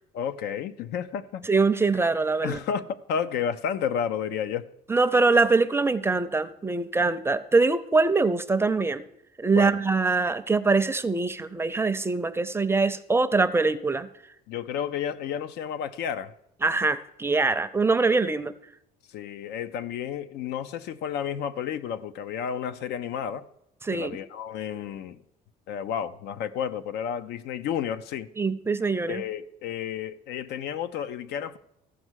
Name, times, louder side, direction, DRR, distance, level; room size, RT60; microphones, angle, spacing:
voice 1, 0.1-1.4 2.4-4.6 9.5-9.8 14.5-16.3 19.1-23.5 23.9-25.2 25.7-28.3 29.1-31.6, left 8 dB, 80° left, 0.6 m, -31 dB
voice 2, 1.4-2.6 4.9-9.0 9.4-14.1 16.6-18.5 23.8-24.2 28.4-29.2, right 3 dB, 15° right, 0.5 m, -23 dB
14.5 x 4.9 x 6.3 m
cardioid pair, 110°, 17 cm